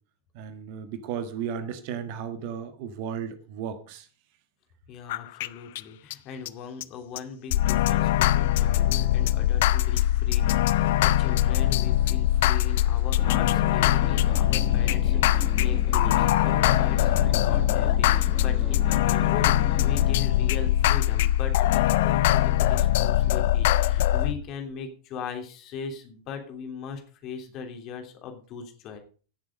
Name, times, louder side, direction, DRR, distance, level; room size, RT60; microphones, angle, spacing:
voice 1, 0.3-4.0, right 8 dB, 45° right, 1.4 m, -34 dB
voice 2, 4.9-29.0, left 6 dB, 40° left, 3.3 m, -39 dB
sound 1, 5.1-5.5 5.8-5.9 6.1-6.2 6.5-6.6 6.8-6.9 7.2-7.3 7.5-24.3, left 13 dB, 55° left, 0.6 m, -22 dB
sound 2, 13.2-20.2, equal, 10° right, 2.8 m, -39 dB
16.0 x 7.4 x 5.2 m
figure-of-eight pair, 90°, 0 cm